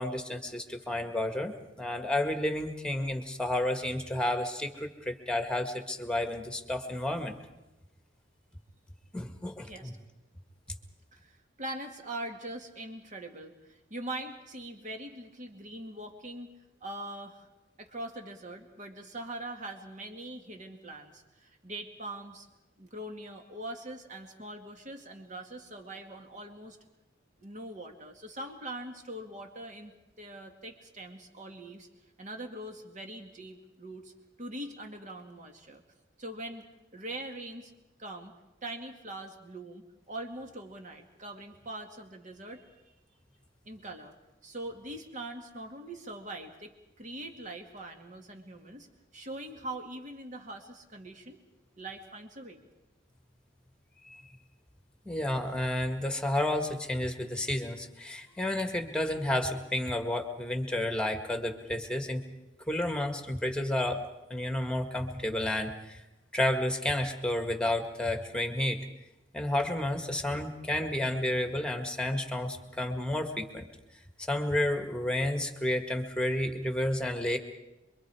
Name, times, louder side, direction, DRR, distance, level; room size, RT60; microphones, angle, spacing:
voice 1, 0.0-7.4 9.1-9.9 54.1-54.2 55.1-62.2 62.7-64.0 64.3-66.0 66.3-68.8 69.3-73.7 74.3-77.4, left 1 dB, 5° left, 6 dB, 1.8 m, -31 dB
voice 2, 11.1-16.5 16.8-17.5 17.8-22.5 22.8-26.8 27.4-31.9 32.2-34.1 34.4-35.8 36.2-36.7 36.9-37.7 38.0-38.3 38.6-42.7 43.7-44.1 44.4-48.9 49.1-51.4 51.8-52.6, right 1 dB, 40° right, 4 dB, 2.3 m, -42 dB
27.0 x 23.5 x 4.9 m, 0.98 s
head